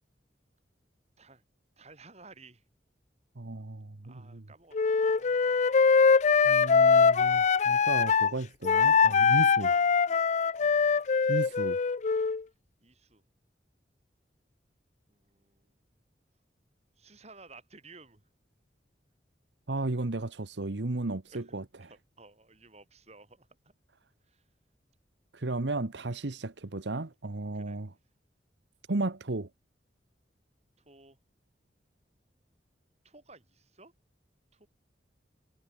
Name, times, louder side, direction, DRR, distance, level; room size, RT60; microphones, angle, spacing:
voice 1, 1.8-2.6 4.0-5.4 9.5-10.2 10.6-10.7 12.8-13.2 15.1-15.7 17.0-18.2 21.3-21.5 21.8-23.7 24.2-24.4 27.5-27.8 30.8-31.2 33.0-33.9 34.5-34.7, right 3 dB, 35° right, 5.4 m, -55 dB
voice 2, 3.4-4.4 6.4-9.7 11.3-11.8 19.7-21.9 25.3-27.9 28.9-29.5, right 2 dB, 80° right, 1.2 m, -34 dB
Wind instrument woodwind instrument, 4.7-8.3 8.6-12.4, left 5 dB, 40° left, 0.4 m, -23 dB
head